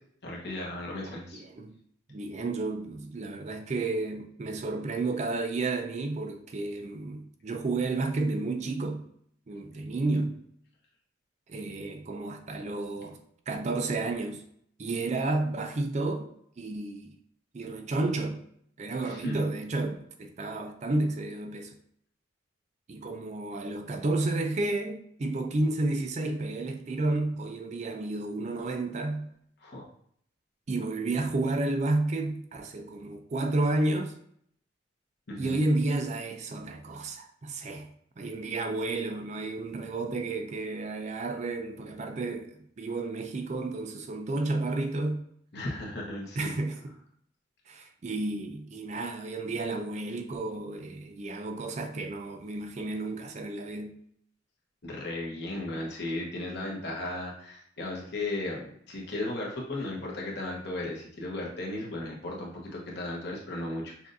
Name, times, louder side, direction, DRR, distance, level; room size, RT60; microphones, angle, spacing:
voice 1, 0.2-1.4 10.1-10.3 19.0-19.5 29.6-29.8 35.3-35.6 45.5-46.6 54.8-64.1, left 2 dB, 60° left, 1.1 m, -36 dB
voice 2, 1.3-1.8 2.1-9.1 9.5-10.4 11.5-13.2 13.5-14.4 14.8-16.3 16.6-17.1 17.5-18.4 18.8-21.7 22.9-29.3 30.7-34.2 35.4-37.9 38.2-45.2 46.4-46.9 47.7-53.9, right 2 dB, 35° right, 0.4 m, -31 dB
5.9 x 2.5 x 2.6 m
head